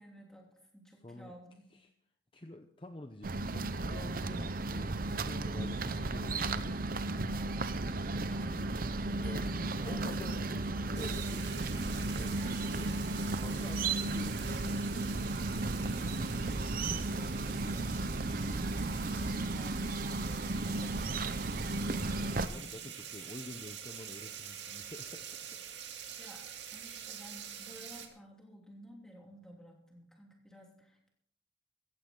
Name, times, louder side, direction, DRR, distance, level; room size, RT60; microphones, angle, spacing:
voice 1, 0.0-1.7 8.1-8.4 9.2-9.5 9.8-10.5 15.9-22.9 26.1-26.5 26.7-31.1, equal, 5° left, -1 dB, 2.9 m, -53 dB
voice 2, 1.0-1.3 1.7-1.9 2.3-6.8 9.1-15.1 22.2-25.4, left 1 dB, 25° left, 6 dB, 0.7 m, -48 dB
sound 1, 3.2-22.5, right 2 dB, 50° right, 0.7 m, -34 dB
sound 2, 6.8-13.9, right 2 dB, 25° right, 4.4 m, -55 dB
sound 3, 10.9-28.1, right 9 dB, 70° right, 2.0 m, -46 dB
15.5 x 15.0 x 3.9 m, 0.70 s
head